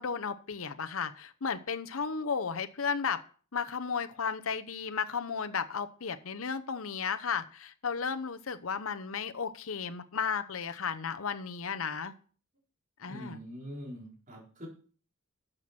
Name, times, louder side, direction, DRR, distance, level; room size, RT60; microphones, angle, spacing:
voice 1, 0.0-3.2 3.5-12.1 13.0-13.4, left 6 dB, 70° left, 9 dB, 0.9 m, -34 dB
voice 2, 13.1-14.7, equal, 40° right, -2 dB, 4.4 m, -43 dB
12.5 x 7.7 x 4.4 m, 0.41 s
head